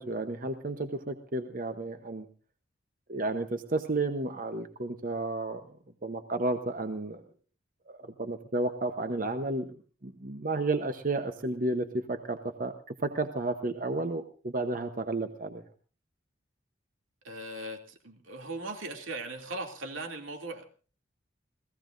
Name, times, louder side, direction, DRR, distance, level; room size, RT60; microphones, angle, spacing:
voice 1, 0.0-2.3 3.1-5.6 6.0-7.2 7.9-9.7 10.0-12.7 13.0-15.6, right 2 dB, 45° right, 8 dB, 0.9 m, -32 dB
voice 2, 17.2-20.7, right 2 dB, 85° right, 4 dB, 2.7 m, -39 dB
29.0 x 16.5 x 2.6 m, 0.39 s
head